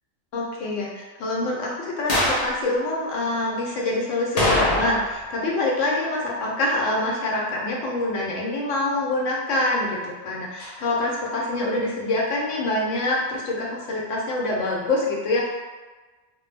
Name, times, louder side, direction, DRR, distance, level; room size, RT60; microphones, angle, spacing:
voice 1, 0.3-15.5, left 2 dB, 80° left, -3 dB, 1.0 m, -25 dB
sound 1, 2.1-2.5 4.4-5.2 5.5-5.6 10.6-10.7, left 1 dB, 55° left, 0.4 m, -22 dB
2.2 x 2.1 x 3.2 m, 1.3 s
omnidirectional pair, 1.3 m